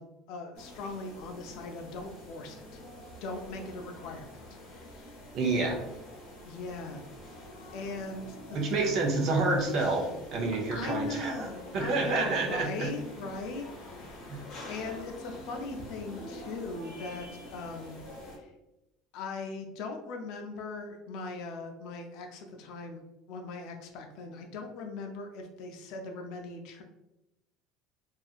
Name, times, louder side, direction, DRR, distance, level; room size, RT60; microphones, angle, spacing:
voice 1, 0.0-2.8 3.2-4.4 4.7-5.3 6.4-7.0 7.7-8.6 10.7-14.4 14.7-18.5 19.1-23.0 23.3-26.8, left 3 dB, 60° left, 4 dB, 0.4 m, -40 dB
sound 1, 0.5-18.4, left 1 dB, 45° left, 0.9 m, -46 dB
voice 2, 5.3-5.8 8.5-11.5 11.7-12.9 14.3-14.4, right 3 dB, 40° right, 1 dB, 0.5 m, -28 dB
2.7 x 2.4 x 2.4 m, 0.92 s
cardioid pair, 160°, 0 cm